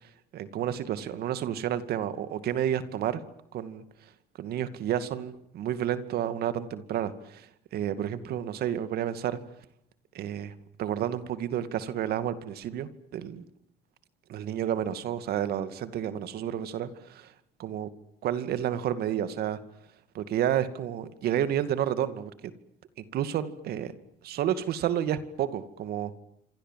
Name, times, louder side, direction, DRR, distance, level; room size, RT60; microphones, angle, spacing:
voice 1, 0.3-3.2 3.5-3.8 4.4-9.4 10.1-13.4 14.3-17.3 17.6-17.9 18.2-19.6 20.1-22.3 23.1-23.9 24.2-26.2, right 10 dB, 65° right, 12 dB, 2.4 m, -30 dB
26.5 x 25.5 x 7.7 m, 0.78 s
supercardioid pair, 90°, 17 cm